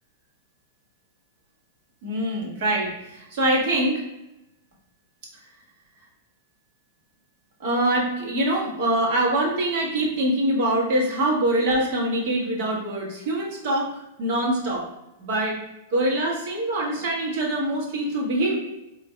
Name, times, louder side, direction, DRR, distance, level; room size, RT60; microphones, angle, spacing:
voice 1, 2.0-4.0 7.6-13.9 14.2-14.8 15.2-15.6 15.9-18.6, right 1 dB, 50° right, -2 dB, 1.3 m, -24 dB
4.0 x 2.4 x 3.3 m, 0.94 s
figure-of-eight pair, 100°, 0 cm